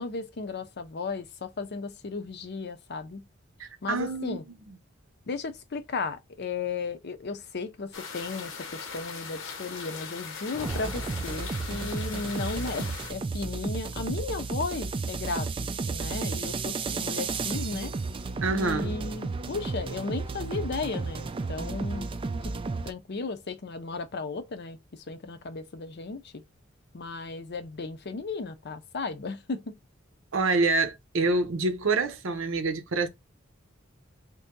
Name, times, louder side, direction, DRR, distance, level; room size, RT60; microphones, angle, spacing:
voice 1, 0.0-3.2 3.8-4.4 5.3-17.9 18.5-22.5 22.8-26.4 26.9-29.7, left 4 dB, 55° left, 0.6 m, -35 dB
voice 2, 3.6-4.4 18.4-18.9 30.3-33.1, right 3 dB, 75° right, 0.7 m, -26 dB
sound 1, 7.9-13.1, left 5 dB, 75° left, 0.9 m, -40 dB
sound 2, 10.5-12.5, equal, ahead, 0.8 m, -43 dB
sound 3, 10.6-22.9, right 4 dB, 25° right, 0.3 m, -33 dB
3.0 x 2.7 x 3.6 m
head